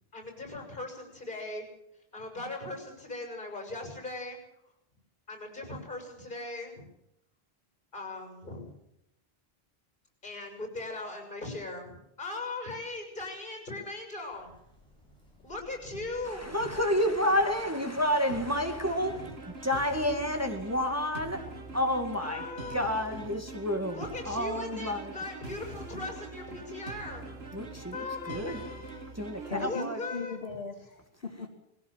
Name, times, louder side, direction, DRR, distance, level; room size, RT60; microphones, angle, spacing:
voice 1, 0.1-1.7 2.1-4.4 5.3-6.8 7.9-8.7 10.2-14.5 15.4-16.8 19.0-19.3 22.2-23.2 23.9-27.3 27.9-29.1 29.6-30.4, left 2 dB, 50° left, 3 dB, 7.1 m, -39 dB
Crow, 14.3-20.9, equal, 5° left, 8.0 m, -57 dB
voice 2, 16.2-19.3 19.6-21.4 21.7-22.4 22.7-25.1 27.5-28.6 29.1-30.0, left 1 dB, 15° right, 4 dB, 2.2 m, -30 dB
sound 1, 18.3-29.7, right 3 dB, 85° right, 2.0 m, -44 dB
voice 3, 29.5-31.5, left 4 dB, 75° left, 3 dB, 2.3 m, -38 dB
20.5 x 17.0 x 7.5 m, 0.81 s
omnidirectional pair, 1.0 m